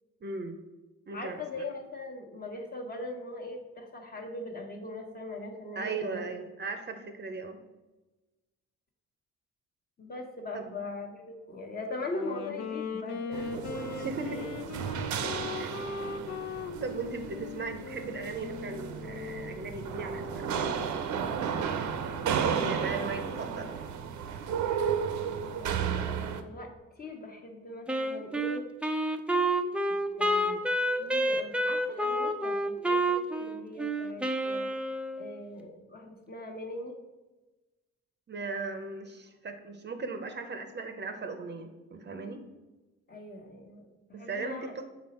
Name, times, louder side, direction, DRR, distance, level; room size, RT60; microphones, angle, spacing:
voice 1, 0.2-0.6 1.1-1.6 5.8-7.6 10.5-10.6 14.0-14.4 15.2-15.8 16.8-21.2 21.7-23.7 38.3-42.4 44.1-44.8, right 3 dB, 35° right, 7 dB, 0.7 m, -38 dB
voice 2, 1.1-6.3 10.0-14.5 25.4-26.7 27.0-28.6 30.2-34.7 35.2-36.9 43.1-44.7, left 2 dB, 30° left, 2 dB, 1.2 m, -41 dB
Wind instrument woodwind instrument, 12.0-20.6, left 4 dB, 60° left, 0.7 m, -39 dB
sound 1, 13.3-26.4, right 7 dB, 75° right, 0.7 m, -33 dB
Wind instrument woodwind instrument 2, 27.9-35.4, right 1 dB, 5° right, 0.4 m, -29 dB
6.1 x 4.1 x 4.2 m, 1.1 s
cardioid pair, 90°, 30 cm